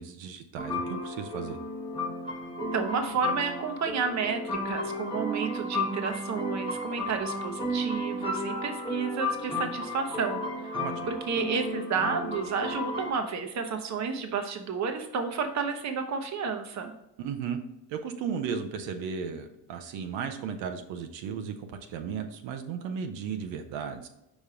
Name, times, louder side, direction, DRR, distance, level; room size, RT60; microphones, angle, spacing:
voice 1, 0.0-1.6 10.7-10.9 17.2-17.6 17.9-24.1, right 6 dB, 80° right, 6 dB, 0.8 m, -35 dB
sound 1, 0.6-13.1, left 1 dB, 10° left, 1.2 m, -33 dB
voice 2, 2.6-10.4 11.1-16.9, right 5 dB, 40° right, 6 dB, 0.9 m, -31 dB
5.4 x 5.1 x 3.7 m, 0.90 s
cardioid pair, 115°, 44 cm